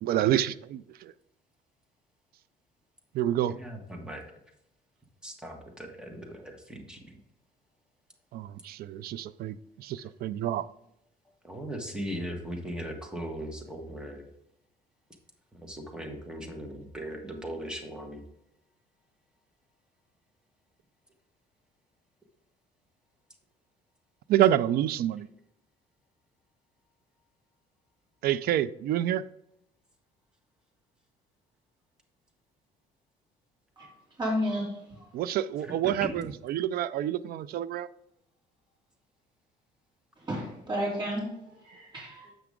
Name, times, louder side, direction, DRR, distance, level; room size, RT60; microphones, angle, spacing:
voice 1, 0.0-1.1 3.1-3.6 8.3-10.7 24.3-25.3 28.2-29.2 35.1-37.9, right 12 dB, 65° right, 0.4 m, -28 dB
voice 2, 3.5-4.2 5.2-7.2 11.4-14.3 15.5-18.2 35.6-35.7 36.0-36.3 42.2-42.4, equal, 5° right, 1.5 m, -39 dB
voice 3, 34.2-34.7 35.0-35.1 40.3-42.3, equal, 25° right, 3.2 m, -32 dB
7.7 x 6.0 x 3.6 m
cardioid pair, 110°, 17 cm